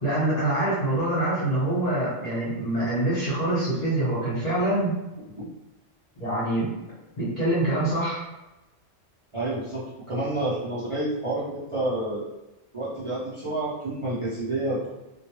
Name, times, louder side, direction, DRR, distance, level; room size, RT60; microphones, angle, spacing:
voice 1, 0.0-4.9 6.2-6.7 7.2-8.2, right 1 dB, 35° left, -10 dB, 0.9 m, -25 dB
voice 2, 9.3-12.2 12.7-14.9, right 2 dB, 40° right, -10 dB, 0.4 m, -29 dB
2.2 x 2.2 x 2.9 m, 1.0 s
omnidirectional pair, 1.3 m